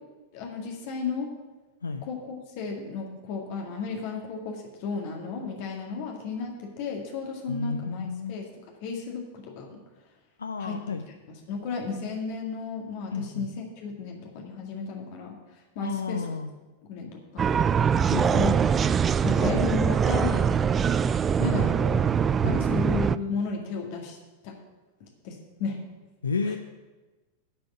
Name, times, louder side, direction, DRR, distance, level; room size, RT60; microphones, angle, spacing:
voice 1, 0.3-1.3 2.0-8.5 8.8-9.8 10.6-10.8 11.5-16.3 16.9-17.6 18.1-18.7 19.2-20.6 21.4-22.1 22.4-24.2 24.4-24.6 25.0-25.8 26.4-26.6, left 5 dB, 50° left, 1 dB, 1.9 m, -34 dB
voice 2, 7.5-8.4 10.4-11.0 13.1-13.4 15.8-16.5 18.1-18.5 19.5-19.6 21.5-21.7 22.4-22.6 26.2-26.6, left 4 dB, 75° left, 7 dB, 0.5 m, -31 dB
sound 1, 17.4-23.2, right 7 dB, 20° right, 0.3 m, -23 dB
10.5 x 5.2 x 8.2 m, 1.2 s
figure-of-eight pair, 90°, 0 cm